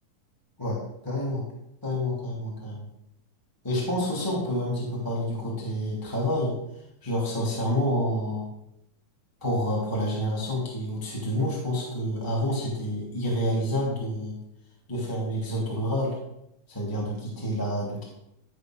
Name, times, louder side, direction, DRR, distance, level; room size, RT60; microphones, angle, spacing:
voice 1, 0.6-1.4 1.8-2.9 3.6-6.5 7.0-8.5 9.4-14.3 14.9-16.1 16.7-18.0, equal, 5° left, -4 dB, 2.7 m, -28 dB
15.5 x 5.3 x 6.6 m, 0.81 s
omnidirectional pair, 3.7 m